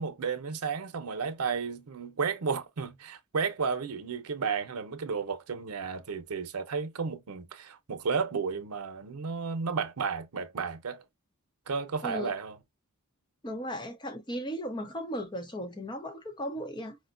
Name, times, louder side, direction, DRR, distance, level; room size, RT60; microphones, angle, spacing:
voice 1, 0.0-11.0 11.7-12.6, right 5 dB, 85° right, 0.7 m, -33 dB
voice 2, 13.4-17.0, equal, 20° left, 0.7 m, -36 dB
5.1 x 2.1 x 2.5 m
head